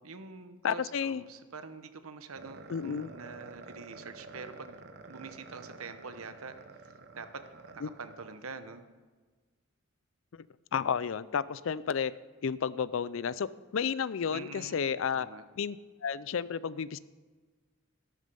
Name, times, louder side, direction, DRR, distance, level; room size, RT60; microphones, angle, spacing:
voice 1, 0.0-4.8 5.1-6.5 7.2-8.8 14.3-15.4, right 4 dB, 85° right, 10 dB, 1.0 m, -45 dB
voice 2, 0.6-1.2 2.7-3.1 7.8-7.9 10.7-12.1 12.4-13.5 13.7-15.3 15.6-15.8 16.0-17.0, left 7 dB, 65° left, 18 dB, 0.4 m, -31 dB
sound 1, 2.4-8.8, right 3 dB, 50° right, 1.0 m, -50 dB
13.0 x 12.5 x 5.5 m, 1.4 s
head